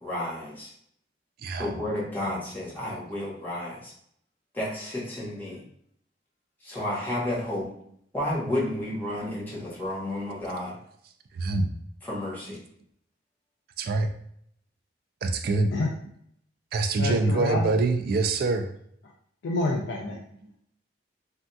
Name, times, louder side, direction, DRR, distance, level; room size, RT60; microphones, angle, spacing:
voice 1, 0.0-0.7 1.6-3.9 4.5-5.6 6.6-7.7 8.1-10.8 12.0-12.6, left 1 dB, 10° left, -6 dB, 1.0 m, -31 dB
voice 2, 11.3-11.7 13.8-14.1 15.2-15.7 16.7-18.7 20.4-20.5, right 3 dB, 55° right, 6 dB, 0.3 m, -25 dB
voice 3, 17.0-17.7 19.4-20.2, left 2 dB, 75° left, -2 dB, 0.4 m, -28 dB
3.4 x 2.7 x 2.2 m, 0.68 s
head